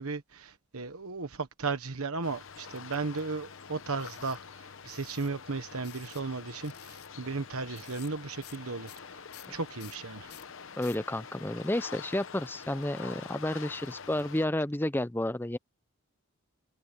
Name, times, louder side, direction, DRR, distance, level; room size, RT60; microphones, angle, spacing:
voice 1, 0.0-9.2 9.5-10.4, right 4 dB, 80° right, 1.2 m, -35 dB
sound 1, 2.2-14.5, left 6 dB, 60° left, 0.8 m, -46 dB
sound 2, 2.8-3.2 4.0-4.4 4.9-5.3 5.8-6.3 6.6-7.1 7.8-8.1 8.4-8.6 8.9-11.0 11.6-14.2, left 13 dB, 85° left, 4.4 m, -53 dB
voice 2, 10.8-15.6, left 1 dB, 10° left, 0.5 m, -31 dB
head